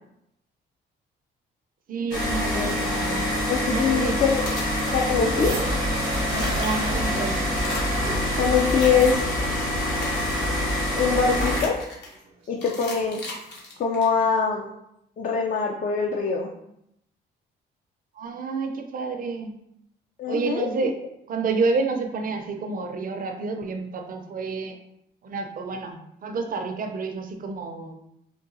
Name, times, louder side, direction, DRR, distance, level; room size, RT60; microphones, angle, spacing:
voice 1, 1.9-3.3 3.7-4.2 6.6-7.4 18.1-19.6 20.3-21.0 21.3-24.8 25.2-28.0, right 4 dB, 45° right, 5 dB, 0.5 m, -29 dB
sound 1, 2.1-11.6, left 1 dB, 85° left, 1.0 m, -25 dB
voice 2, 3.4-4.4 4.9-5.5 8.3-9.2 11.0-11.8 12.5-13.2 13.8-14.7 15.2-16.5 20.2-20.9, left 6 dB, 45° left, 0 dB, 0.4 m, -23 dB
sound 2, 4.2-5.6 5.9-7.1 7.5-8.1 8.5-9.4 9.8-10.6 11.3-12.2 12.6-14.3, left 2 dB, 60° left, 1.0 m, -38 dB
sound 3, 5.3-13.3 14.2-14.3, right 3 dB, 75° right, 0.8 m, -37 dB
3.8 x 2.3 x 2.6 m, 0.79 s
cardioid pair, 90°, 20 cm